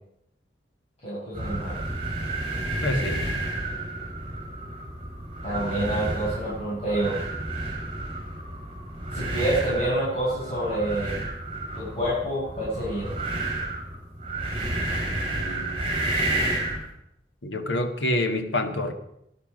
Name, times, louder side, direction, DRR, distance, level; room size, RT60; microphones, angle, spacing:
voice 1, 1.0-1.8 5.4-7.2 9.1-11.2 11.7-13.1, right 1 dB, 35° left, -9 dB, 6.1 m, -27 dB
sound 1, 1.3-16.8, right 1 dB, 30° right, 5.1 m, -31 dB
voice 2, 2.8-3.2 15.3-15.8 17.4-18.9, left 1 dB, 90° left, 7 dB, 1.5 m, -27 dB
18.5 x 11.0 x 5.2 m, 0.79 s
head